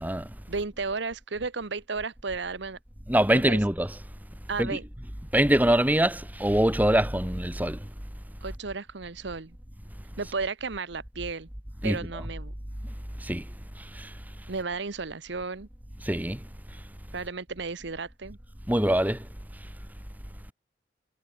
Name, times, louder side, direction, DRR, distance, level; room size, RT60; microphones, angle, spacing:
voice 1, 0.5-2.8 3.5-3.6 4.5-4.8 8.4-9.6 10.2-11.5 11.8-12.5 14.5-15.7 17.1-18.4, right 4 dB, 65° right, 1.0 m, -33 dB
voice 2, 3.1-4.0 4.6-4.8 5.3-7.8 11.8-12.2 13.2-13.4 13.9-14.1 16.0-16.4 18.7-19.2, right 1 dB, 10° right, 1.6 m, -24 dB
head